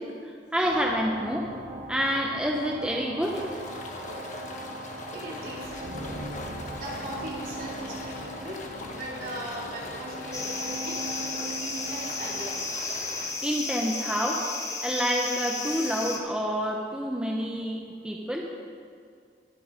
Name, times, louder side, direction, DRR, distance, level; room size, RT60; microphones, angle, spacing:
voice 1, 0.0-1.5 1.9-3.5 13.4-14.4 14.7-18.5, equal, 5° right, -1 dB, 1.0 m, -28 dB
sound 1, 0.6-14.8, right 2 dB, 85° right, 1.9 m, -40 dB
sound 2, 3.2-13.3, left 3 dB, 45° left, 1.5 m, -41 dB
voice 2, 5.1-6.1 6.7-11.0 11.6-12.7, right 1 dB, 55° right, -5 dB, 3.7 m, -39 dB
sound 3, 10.3-16.2, left 3 dB, 20° left, 1.3 m, -33 dB
22.0 x 7.7 x 5.2 m, 2.2 s
head